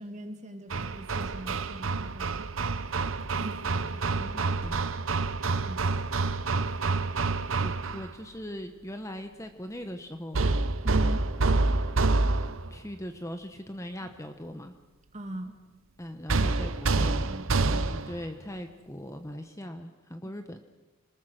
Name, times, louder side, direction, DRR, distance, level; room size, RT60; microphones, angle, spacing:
voice 1, 0.0-2.5 3.4-3.6 5.6-5.9 10.8-11.2 15.1-15.5 16.5-17.7 20.2-20.3, right 1 dB, 30° right, 5 dB, 2.4 m, -41 dB
Hammer, 0.7-8.1 10.3-12.8 16.3-18.2, right 3 dB, 65° right, 0.9 m, -27 dB
voice 2, 3.7-4.8 7.6-10.4 12.7-14.7 16.0-17.3 17.6-20.6, equal, 15° left, 7 dB, 1.1 m, -40 dB
26.5 x 20.0 x 6.5 m, 1.1 s
head